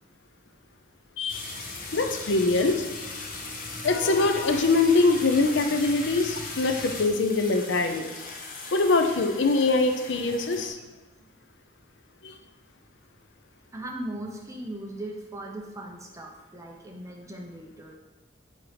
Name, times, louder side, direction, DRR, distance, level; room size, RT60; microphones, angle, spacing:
voice 1, 1.2-1.5 1.9-2.9 3.8-8.1 8.7-10.8 12.2-12.3, left 3 dB, 75° left, 6 dB, 0.6 m, -23 dB
sound 1, 1.3-10.7, left 3 dB, 45° left, 1.0 m, -38 dB
voice 2, 13.7-18.0, right 1 dB, 15° right, 0 dB, 0.9 m, -39 dB
7.1 x 4.4 x 5.2 m, 1.2 s
head